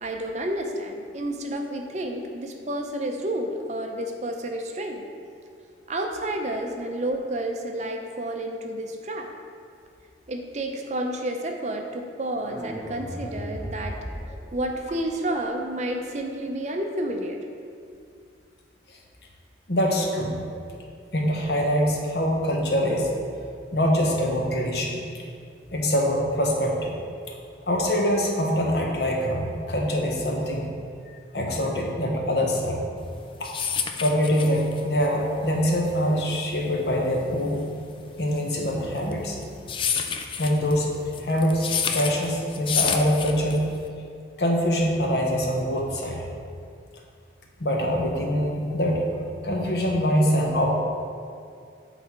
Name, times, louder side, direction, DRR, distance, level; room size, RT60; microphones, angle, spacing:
voice 1, 0.0-5.1 5.9-9.3 10.3-14.0 14.5-17.4, right 1 dB, 40° right, 3 dB, 0.5 m, -30 dB
sound 1, 12.3-15.3, equal, 10° right, 1.5 m, -37 dB
voice 2, 19.7-20.4 21.1-23.1 23.7-25.0 25.7-26.9 27.3-27.4 27.7-30.7 31.3-32.9 33.4-33.5 34.0-37.7 38.2-39.4 40.4-43.7 44.4-46.2 47.6-49.0 49.4-50.7, equal, 60° left, 0 dB, 1.0 m, -24 dB
sound 2, 33.1-43.9, left 7 dB, 30° left, 0.3 m, -30 dB
7.9 x 4.0 x 4.6 m, 2.3 s
head